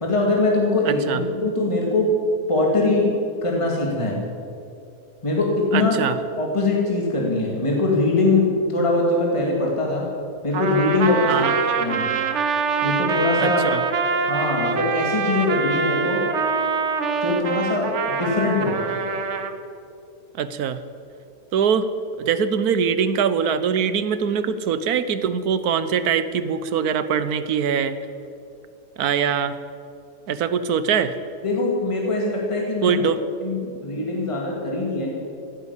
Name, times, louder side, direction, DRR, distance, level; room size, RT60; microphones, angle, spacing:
voice 1, 0.0-2.1 2.5-4.2 5.2-6.0 6.4-10.1 10.4-11.5 11.8-12.1 12.8-13.8 14.3-16.3 17.2-18.8 31.4-33.0 33.4-35.1, left 2 dB, 20° left, -1 dB, 2.2 m, -22 dB
voice 2, 0.8-1.2 5.7-6.2 11.3-11.5 13.4-13.8 20.4-20.8 21.5-21.9 22.2-28.0 29.0-29.5 30.3-31.1 32.8-33.2 34.0-34.1, right 7 dB, 70° right, 12 dB, 1.3 m, -22 dB
Trumpet, 10.5-19.5, right 5 dB, 50° right, 1.1 m, -24 dB
15.5 x 10.5 x 8.3 m, 2.6 s
omnidirectional pair, 1.7 m